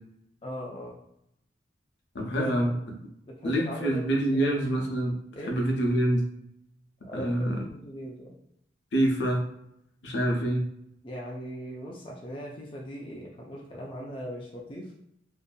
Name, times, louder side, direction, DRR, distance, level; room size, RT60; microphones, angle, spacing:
voice 1, 0.4-1.0 2.2-2.8 3.3-4.0 4.3-4.5 5.3-5.5 7.1-8.4 11.0-14.9, equal, 30° left, -3 dB, 0.4 m, -39 dB
voice 2, 2.1-2.7 3.4-5.1 5.4-6.2 7.1-7.6 8.9-9.4 10.0-10.6, right 1 dB, 70° left, 0 dB, 0.7 m, -26 dB
2.6 x 2.6 x 2.2 m, 0.78 s
head